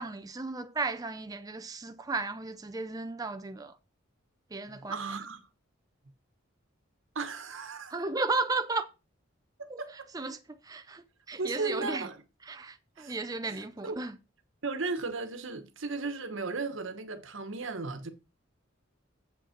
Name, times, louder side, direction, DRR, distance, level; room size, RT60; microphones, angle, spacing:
voice 1, 0.0-3.8 4.5-5.0 7.9-8.9 9.7-9.8 10.1-10.4 10.6-12.1 12.4-14.2, right 3 dB, 20° right, 0.5 m, -34 dB
voice 2, 4.7-5.4 7.1-7.9 9.6-10.0 11.3-12.2 13.0-13.2 13.5-14.1 14.6-18.1, right 3 dB, 75° right, 1.2 m, -36 dB
7.9 x 5.5 x 5.8 m
head